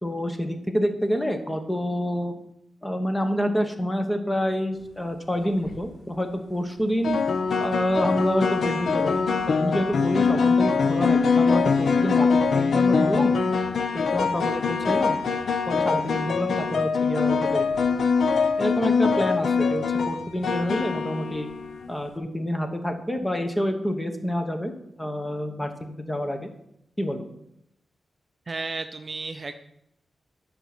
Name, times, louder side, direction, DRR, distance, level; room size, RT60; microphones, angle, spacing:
voice 1, 0.0-2.3 2.8-7.2 7.6-13.3 13.9-15.2 15.7-18.0 18.6-21.5 21.9-24.7 25.0-25.7 26.0-26.5 27.0-27.2, equal, 10° left, 6 dB, 0.9 m, -27 dB
sound 1, 5.4-5.8 7.0-21.9, left 5 dB, 60° left, 0.6 m, -23 dB
voice 2, 28.5-29.6, right 3 dB, 30° right, 7 dB, 0.4 m, -33 dB
11.0 x 5.5 x 5.9 m, 0.79 s
wide cardioid pair, 180°, 0 cm